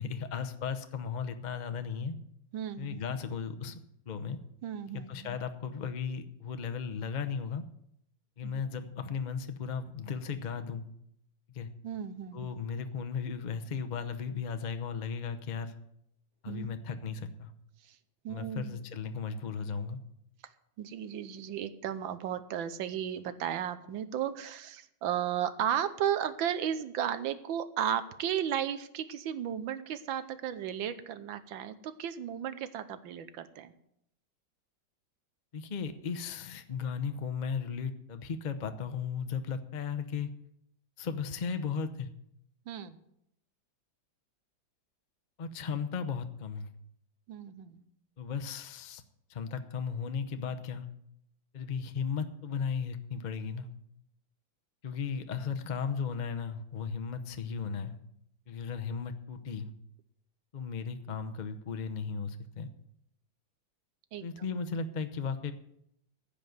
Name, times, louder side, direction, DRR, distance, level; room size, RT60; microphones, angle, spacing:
voice 1, 0.0-2.2 2.8-3.8 4.1-4.4 4.9-7.6 8.4-10.9 11.5-11.7 12.3-15.7 16.4-17.5 18.3-20.0 35.5-40.3 41.0-42.1 45.4-46.7 48.2-49.0 49.3-50.9 51.5-53.7 54.8-58.0 58.5-59.7 60.5-62.7 64.2-65.5, left 6 dB, 45° left, 9 dB, 0.5 m, -36 dB
voice 2, 2.5-3.0 4.6-5.4 8.4-8.6 11.8-12.5 16.5-16.7 17.8-18.0 18.2-18.8 20.8-33.7 42.7-43.0 47.3-47.8 64.1-64.3, right 9 dB, 75° right, 12 dB, 1.5 m, -34 dB
15.5 x 5.4 x 9.4 m, 0.75 s
omnidirectional pair, 2.2 m